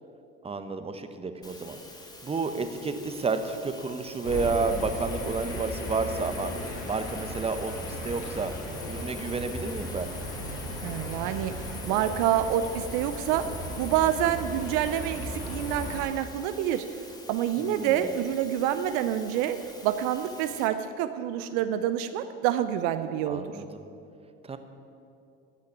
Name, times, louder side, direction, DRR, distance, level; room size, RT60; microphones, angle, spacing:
voice 1, 0.4-1.8 2.2-6.5 6.8-8.5 8.9-10.1 17.6-18.0 23.3-23.8 24.4-24.6, right 4 dB, 20° right, 8 dB, 1.1 m, -31 dB
sound 1, 1.4-20.7, left 2 dB, 15° left, 1.9 m, -48 dB
sound 2, 4.2-16.0, left 1 dB, 50° left, 3.3 m, -36 dB
voice 2, 10.8-11.5 11.8-16.8 17.3-19.6 19.8-23.6, right 11 dB, 70° right, 10 dB, 0.7 m, -27 dB
13.5 x 6.5 x 8.5 m, 2.6 s
hypercardioid pair, 75°, 29 cm